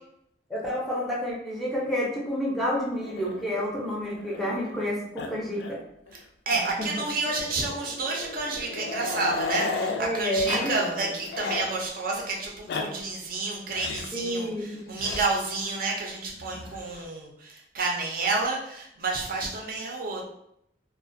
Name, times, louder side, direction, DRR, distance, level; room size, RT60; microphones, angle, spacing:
voice 1, 0.5-5.8 6.5-6.9 10.0-11.1 14.1-14.9, equal, ahead, -5 dB, 0.5 m, -29 dB
Growling, 3.0-4.9 5.2-5.3 5.6-5.8 6.1-6.2 7.2-10.1 10.4-10.7 11.0-11.7 12.4-12.9 13.7-14.2 15.0-15.2 16.4-17.0, left 3 dB, 65° left, 0.3 m, -34 dB
voice 2, 6.1-20.3, right 3 dB, 55° right, -1 dB, 0.5 m, -30 dB
2.3 x 2.1 x 2.5 m, 0.75 s
head